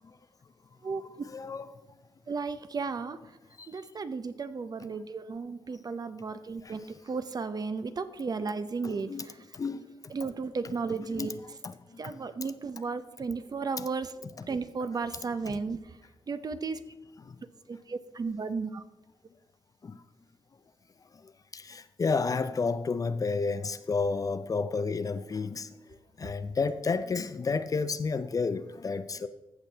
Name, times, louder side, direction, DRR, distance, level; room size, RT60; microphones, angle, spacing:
voice 1, 1.3-1.7 6.6-6.7 8.8-9.2 9.5-9.9 11.2-11.3 11.6-11.7 12.0-12.1 17.3-17.4 19.8-20.0 21.5-25.7 26.2-29.3, left 4 dB, 35° left, 0.4 m, -31 dB
voice 2, 2.3-3.2 3.7-9.4 10.1-11.4 12.0-14.1 14.5-16.0 16.3-16.8 17.7-18.8, right 4 dB, 40° right, 0.6 m, -34 dB
14.5 x 6.1 x 3.3 m
cardioid pair, 80°, 10 cm